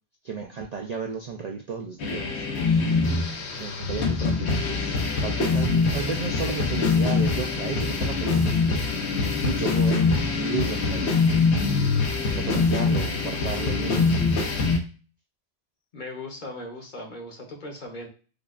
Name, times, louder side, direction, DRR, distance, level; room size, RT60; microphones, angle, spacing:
voice 1, 0.2-2.4 3.6-4.9 5.2-8.6 9.4-11.2 11.6-11.9 12.3-14.1, right 5 dB, 55° right, 2 dB, 0.4 m, -33 dB
sound 1, 2.0-14.8, left 4 dB, 85° left, 1.0 m, -24 dB
voice 2, 15.9-18.1, left 1 dB, 50° left, 1 dB, 1.0 m, -38 dB
5.0 x 2.4 x 2.4 m, 0.37 s
omnidirectional pair, 1.1 m